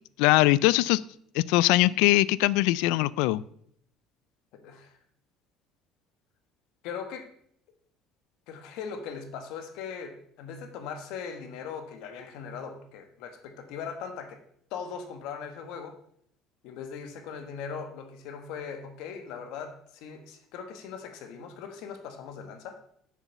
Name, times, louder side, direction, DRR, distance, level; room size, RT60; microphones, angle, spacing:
voice 1, 0.2-1.0 1.3-3.4, left 18 dB, 90° left, 20 dB, 0.3 m, -21 dB
voice 2, 4.5-5.0 6.8-7.3 8.5-14.4 14.7-16.0 16.6-22.8, left 6 dB, 65° left, 7 dB, 1.3 m, -39 dB
7.4 x 6.8 x 5.4 m, 0.66 s
cardioid pair, 175°, 0 cm